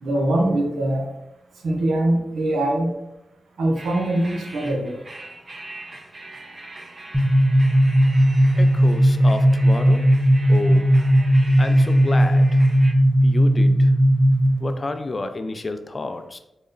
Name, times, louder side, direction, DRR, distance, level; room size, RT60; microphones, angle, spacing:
voice 1, 0.0-1.1 1.6-2.9 3.6-5.0, right 1 dB, 90° right, 1 dB, 0.6 m, -22 dB
sound 1, 3.8-12.9, right 2 dB, 45° right, 0.6 m, -41 dB
sound 2, 7.1-14.7, equal, 15° right, 0.8 m, -16 dB
voice 2, 8.6-10.2 10.5-11.0 11.6-12.6 13.2-13.9 14.6-16.4, left 2 dB, 40° left, 9 dB, 0.4 m, -30 dB
3.9 x 2.1 x 3.8 m, 0.90 s
cardioid pair, 55°, 0 cm